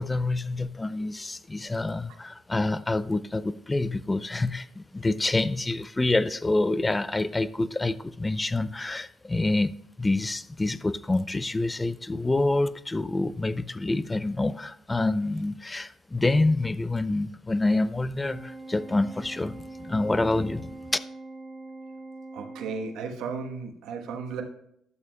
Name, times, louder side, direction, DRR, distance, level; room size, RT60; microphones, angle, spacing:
voice 1, 0.0-21.0, left 2 dB, 20° left, 0.5 m, -27 dB
Organ, 18.2-23.3, right 2 dB, 45° right, 2.3 m, -43 dB
voice 2, 22.3-24.4, right 5 dB, 90° right, 1.2 m, -34 dB
12.0 x 7.3 x 2.3 m
cardioid pair, 90°, 0 cm